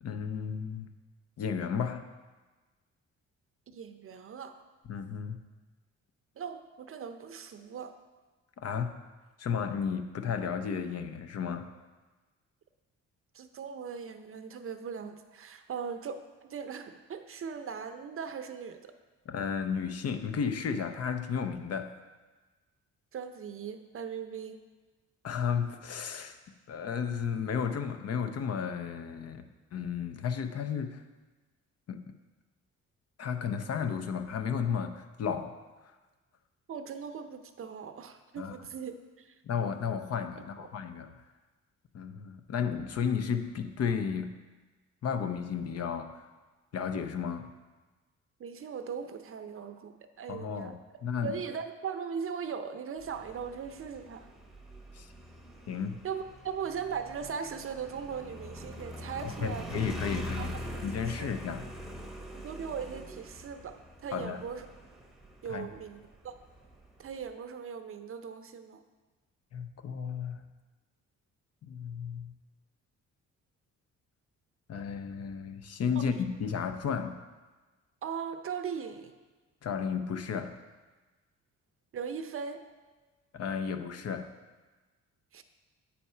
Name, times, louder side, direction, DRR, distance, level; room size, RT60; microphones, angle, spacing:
voice 1, 0.0-0.9 1.4-2.1 4.9-5.4 8.6-9.0 9.4-11.7 19.3-21.9 25.2-26.4 26.7-29.5 29.7-31.0 31.9-32.1 33.2-35.5 38.4-38.5 39.4-41.1 41.9-44.4 45.0-46.3 46.7-47.5 50.3-50.8 51.0-51.3 54.9-55.1 55.7-56.0 59.2-60.5 60.8-61.6 64.1-64.4 65.5-65.7 69.5-70.4 71.6-72.3 74.7-77.2 79.6-80.6 83.3-84.3, left 6 dB, 55° left, 7 dB, 0.7 m, -33 dB
voice 2, 3.7-4.6 6.4-8.0 13.3-18.9 23.1-24.6 36.7-39.3 40.6-40.7 48.4-50.7 51.2-54.3 56.0-59.8 60.2-60.6 61.2-61.3 62.3-64.7 65.4-66.3 67.0-68.8 76.0-76.1 78.0-79.1 81.9-82.6 85.3-85.4, right 6 dB, 45° right, 8 dB, 0.6 m, -39 dB
Motorcycle, 53.0-67.3, equal, ahead, 0.9 m, -44 dB
8.4 x 4.3 x 5.5 m, 1.3 s
cardioid pair, 90°, 30 cm